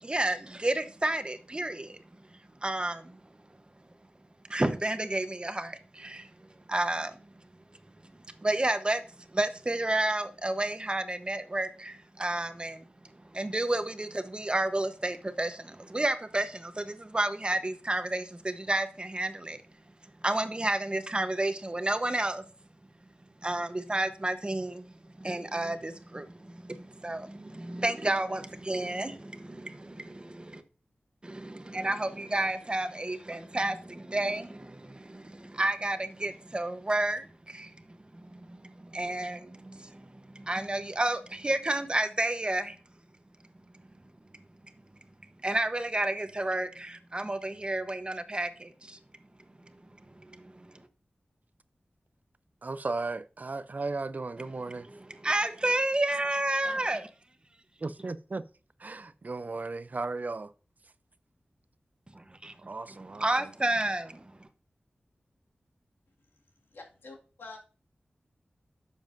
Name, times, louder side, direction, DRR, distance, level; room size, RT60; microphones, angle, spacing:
voice 1, 0.0-2.0 2.6-3.2 4.5-6.3 6.7-7.2 8.4-9.0 9.3-12.8 13.3-19.6 20.2-22.4 23.4-30.6 31.2-42.8 45.4-49.0 50.1-50.9 55.2-57.0 62.4-62.5 63.2-64.2, right 1 dB, 30° right, 0.9 m, -31 dB
voice 2, 52.6-54.9 57.8-58.4 58.8-60.5 62.6-63.5, right 3 dB, 50° right, 0.5 m, -35 dB
voice 3, 56.6-57.0 66.2-67.6, left 3 dB, 90° left, 2.0 m, -49 dB
10.5 x 7.1 x 2.6 m
wide cardioid pair, 60°, 4 cm